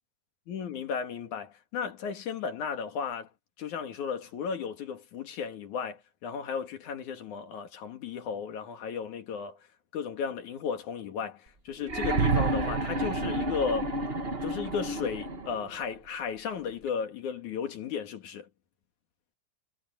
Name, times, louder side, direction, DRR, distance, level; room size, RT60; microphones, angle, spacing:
voice 1, 0.5-3.3 3.6-9.6 9.9-13.9 14.4-18.5, left 6 dB, 70° left, 3.5 m, -34 dB
sound 1, 11.8-15.7 16.9-17.0, right 2 dB, 35° right, 1.0 m, -29 dB
omnidirectional pair, 3.6 m